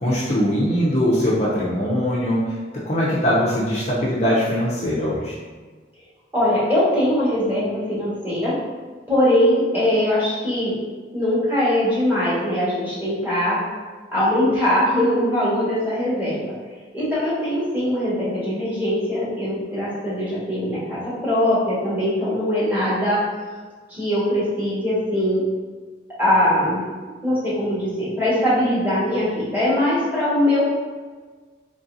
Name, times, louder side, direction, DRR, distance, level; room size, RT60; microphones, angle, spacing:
voice 1, 0.0-2.4 2.9-5.4, equal, 35° left, -7 dB, 0.6 m, -21 dB
voice 2, 6.3-8.6 9.1-10.8 11.1-13.6 14.1-16.5 16.9-23.2 23.9-25.4 26.2-26.8 27.2-30.8, left 1 dB, 10° right, -11 dB, 1.5 m, -21 dB
4.0 x 3.3 x 2.6 m, 1.4 s
head